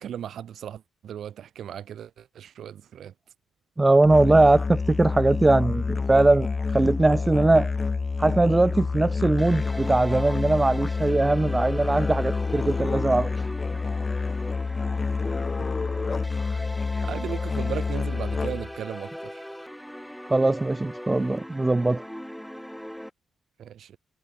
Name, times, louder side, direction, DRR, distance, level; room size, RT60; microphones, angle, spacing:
voice 1, 0.0-3.1 15.6-15.7 17.0-19.4 23.6-24.0, right 9 dB, 65° right, 7.6 m, -36 dB
voice 2, 3.8-6.5 6.7-7.7 8.2-13.3 20.3-22.0, right 2 dB, 15° right, 0.9 m, -21 dB
Musical instrument, 4.0-18.8, left 4 dB, 30° left, 3.0 m, -28 dB
sound 1, 9.4-23.1, equal, ahead, 5.1 m, -40 dB
cardioid pair, 90°, 0 cm